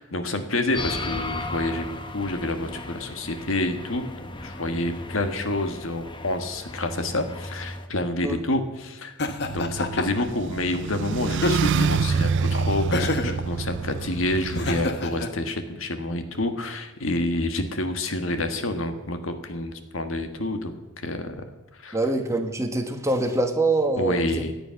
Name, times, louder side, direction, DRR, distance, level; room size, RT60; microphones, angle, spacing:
voice 1, 0.0-9.1 9.5-20.7 21.0-21.4 21.8-22.0 24.0-24.5, left 1 dB, 70° left, 7 dB, 1.6 m, -28 dB
sound 1, 0.7-7.9, left 2 dB, 25° left, 1.0 m, -36 dB
Laughter, 9.2-10.3 11.3-12.0 12.9-13.4 14.5-15.3, left 2 dB, 55° left, 1.2 m, -27 dB
sound 2, 9.4-14.9, right 5 dB, 60° right, 0.4 m, -27 dB
voice 2, 21.9-24.3, right 2 dB, 15° right, 5 dB, 1.4 m, -24 dB
17.5 x 10.5 x 5.8 m, 1.1 s
head